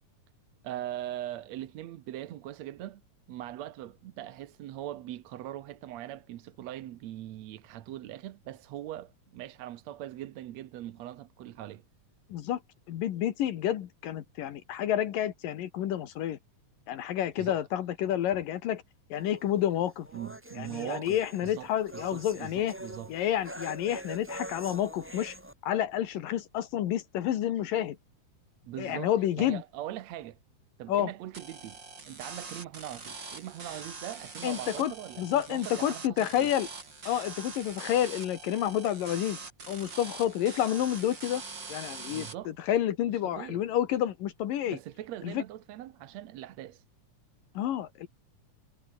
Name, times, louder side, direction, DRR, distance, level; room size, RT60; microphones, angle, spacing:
voice 1, 0.6-3.0 3.3-11.8 17.4-17.6 20.1-23.1 28.6-29.1 29.4-30.4 30.8-36.5 42.1-42.5 43.3-43.6 44.6-46.8, right 13 dB, 65° right, 1.9 m, -41 dB
voice 2, 12.9-16.4 16.9-18.8 19.1-20.1 20.6-22.7 23.1-25.4 25.6-28.0 28.8-29.6 30.9-31.1 34.4-34.9 35.2-36.7 37.1-39.4 39.7-41.4 41.7-44.8 45.2-45.4 47.5-48.1, left 11 dB, 80° left, 3.2 m, -29 dB
sound 1, 19.1-25.5, right 1 dB, 5° right, 2.6 m, -45 dB
sound 2, 31.3-42.3, right 4 dB, 30° right, 4.2 m, -43 dB
omnidirectional pair, 3.9 m